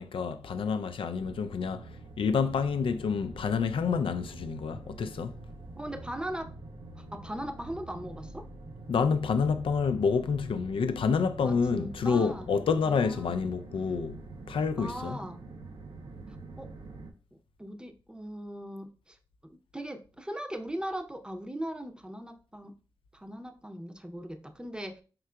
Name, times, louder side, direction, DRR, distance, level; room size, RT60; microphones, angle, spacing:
voice 1, 0.0-1.9 2.2-5.4 8.9-14.2 14.5-15.2, left 5 dB, 90° left, 0.3 m, -28 dB
sound 1, 1.2-17.1, right 2 dB, 80° right, 0.7 m, -46 dB
voice 2, 5.8-6.5 7.0-8.5 11.4-12.5 12.8-13.4 14.8-15.4 16.3-16.7 17.6-19.2 19.4-22.8 23.1-25.0, right 1 dB, 10° right, 0.6 m, -39 dB
4.6 x 3.8 x 2.2 m
cardioid pair, 60°, 9 cm